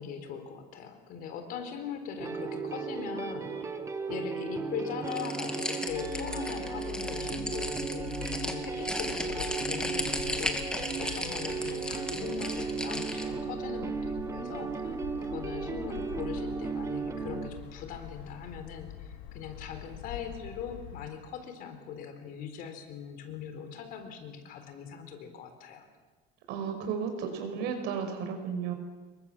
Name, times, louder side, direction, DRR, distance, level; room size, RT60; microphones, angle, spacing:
voice 1, 0.0-3.8 4.1-8.1 8.4-25.9, left 7 dB, 50° left, 7 dB, 4.0 m, -41 dB
sound 1, 2.2-17.5, right 5 dB, 15° right, 1.5 m, -35 dB
sound 2, 5.1-13.3, left 1 dB, 5° left, 2.2 m, -36 dB
sound 3, 5.9-21.1, left 10 dB, 85° left, 2.9 m, -45 dB
voice 2, 26.5-28.7, right 6 dB, 60° right, 5 dB, 5.6 m, -33 dB
27.5 x 23.0 x 7.3 m, 1.3 s
cardioid pair, 165°, 19 cm